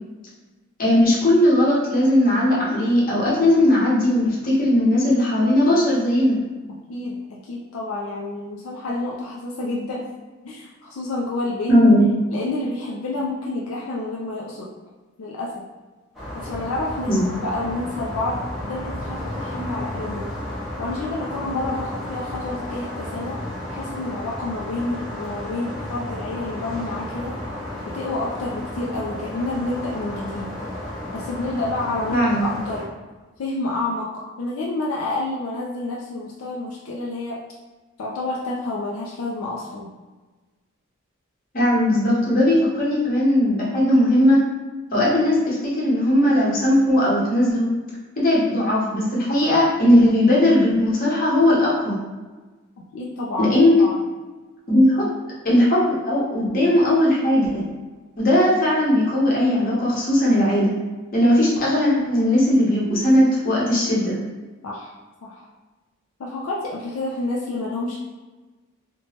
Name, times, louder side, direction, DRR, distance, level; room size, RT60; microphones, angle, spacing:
voice 1, 0.8-6.4 11.7-12.1 17.1-17.2 32.1-32.4 41.5-44.4 44.9-47.7 48.2-51.9 53.4-53.8 54.7-55.0 55.4-57.7 58.2-60.7 61.1-64.2, left 1 dB, 45° left, -6 dB, 0.9 m, -18 dB
voice 2, 6.9-10.1 10.4-11.7 12.3-14.7 15.2-15.6 16.3-17.1 17.4-20.3 20.8-27.4 27.9-30.5 31.1-32.9 33.4-34.1 34.4-37.4 38.0-39.9 52.8-54.0 64.6-65.0 65.2-65.5 66.2-68.0, left 2 dB, 80° left, -3 dB, 0.4 m, -29 dB
sound 1, 16.1-32.9, left 1 dB, ahead, 0.6 m, -33 dB
2.9 x 2.2 x 2.8 m, 1.3 s
head